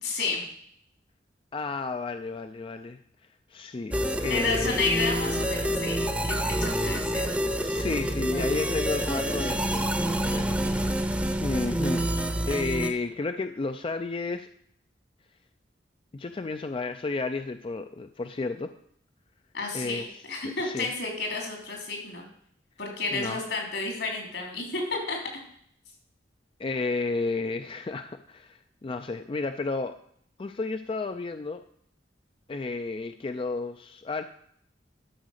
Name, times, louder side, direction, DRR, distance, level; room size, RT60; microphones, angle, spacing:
voice 1, 0.0-0.4 4.3-6.0 6.2-7.3 19.5-22.2 22.8-25.2, left 3 dB, 75° left, 1 dB, 3.4 m, -31 dB
voice 2, 1.5-3.0 3.5-3.9 4.2-4.8 6.7-7.0 7.6-12.0 12.5-14.5 16.1-18.7 19.7-20.1 20.4-20.9 23.1-23.4 26.6-29.9 30.4-31.6 32.5-34.2, left 3 dB, 30° left, 8 dB, 0.4 m, -32 dB
sound 1, 3.9-12.9, equal, 5° right, 0.7 m, -27 dB
12.0 x 5.0 x 6.5 m, 0.66 s
head